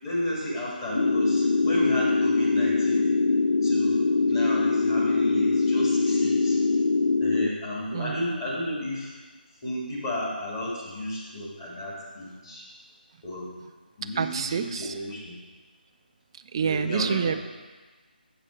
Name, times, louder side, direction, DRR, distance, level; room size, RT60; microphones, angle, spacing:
voice 1, 0.0-3.1 3.6-6.6 7.2-9.1 9.6-12.7 13.2-13.5 14.0-15.4 16.6-17.4, left 1 dB, 25° left, -6 dB, 1.8 m, -32 dB
sound 1, 0.9-7.5, left 3 dB, 75° left, 0.3 m, -23 dB
voice 2, 14.2-14.9 16.5-17.3, right 7 dB, 30° right, 9 dB, 0.3 m, -27 dB
8.2 x 6.0 x 4.4 m, 1.3 s
figure-of-eight pair, 160°, 5 cm